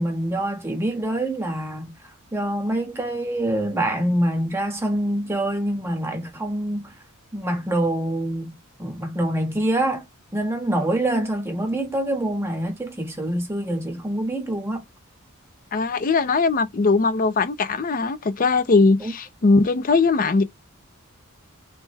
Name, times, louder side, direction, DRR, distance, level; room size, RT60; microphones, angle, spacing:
voice 1, 0.0-6.9 7.3-10.0 10.3-14.8 19.0-19.1, right 1 dB, 10° right, 1.0 m, -25 dB
voice 2, 15.7-20.4, left 3 dB, 40° left, 0.4 m, -20 dB
3.3 x 2.1 x 3.2 m
head